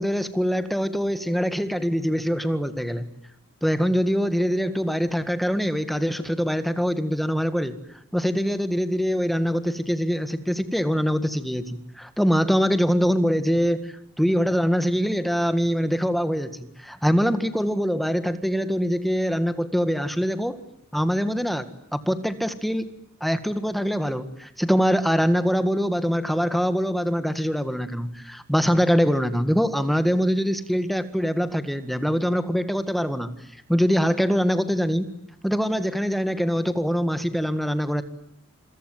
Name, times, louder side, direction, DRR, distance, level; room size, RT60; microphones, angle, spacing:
voice 1, 0.0-3.0 3.6-7.7 8.1-20.6 20.9-22.9 23.2-33.3 33.7-35.1 35.4-38.0, equal, ahead, 10 dB, 1.7 m, -23 dB
27.5 x 23.0 x 9.2 m, 0.73 s
head